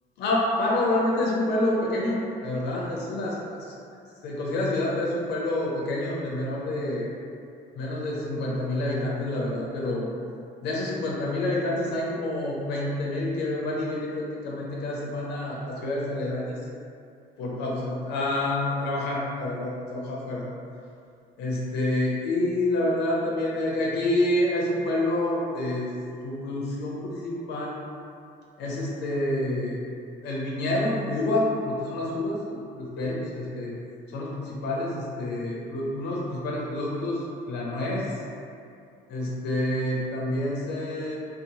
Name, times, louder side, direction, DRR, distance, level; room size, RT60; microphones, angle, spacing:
voice 1, 0.2-3.4 4.2-7.1 7.8-10.1 10.6-16.6 17.4-20.4 21.4-25.9 26.2-27.8 28.6-29.8 30.2-33.7 34.1-38.1 39.1-41.2, left 1 dB, 80° left, -4 dB, 0.5 m, -28 dB
2.7 x 2.0 x 2.8 m, 2.5 s
cardioid pair, 110°, 17 cm